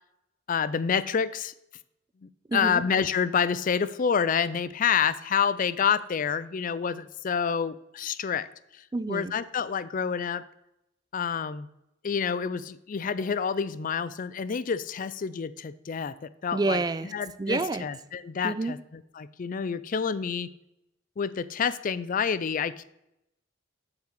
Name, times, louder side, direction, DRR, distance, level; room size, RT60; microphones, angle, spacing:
voice 1, 0.5-1.5 2.5-8.5 9.1-10.4 11.1-11.7 12.0-16.8 17.1-20.5 21.2-22.8, left 6 dB, 45° left, 16 dB, 0.4 m, -28 dB
voice 2, 2.5-2.8 8.9-9.3 16.5-17.1 17.4-17.8 18.4-18.7, right 3 dB, 20° right, 14 dB, 0.4 m, -28 dB
7.6 x 6.0 x 6.6 m, 0.84 s
head